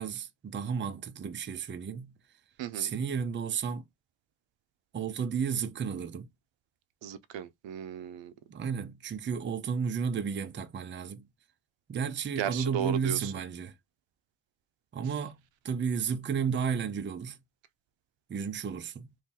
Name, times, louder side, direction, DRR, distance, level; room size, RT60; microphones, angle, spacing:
voice 1, 0.0-2.2 2.7-3.9 4.9-6.3 8.5-11.3 11.9-13.7 14.9-17.4 18.3-19.1, right 6 dB, 25° right, 0.4 m, -33 dB
voice 2, 2.6-2.9 7.0-8.3 12.4-13.3, right 9 dB, 75° right, 0.6 m, -35 dB
2.8 x 2.6 x 3.6 m
cardioid pair, 95°, 46 cm